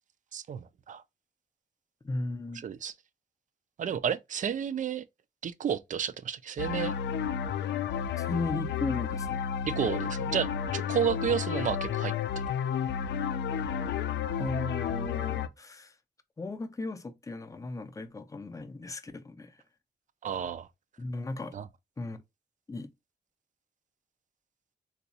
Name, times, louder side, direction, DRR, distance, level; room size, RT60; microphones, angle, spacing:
voice 1, 0.3-1.0 2.6-2.9 3.8-5.0 5.4-6.9 9.6-10.5 10.7-12.4 20.2-20.7 21.5-21.6, right 8 dB, 45° right, 0.4 m, -31 dB
voice 2, 2.0-2.6 8.2-9.4 14.4-15.9 16.4-19.6 21.0-21.5 22.0-22.2 22.7-22.9, left 2 dB, 20° left, 0.5 m, -36 dB
sound 1, 6.6-15.5, left 8 dB, 80° left, 0.4 m, -32 dB
3.9 x 2.3 x 2.7 m
wide cardioid pair, 145°, 18 cm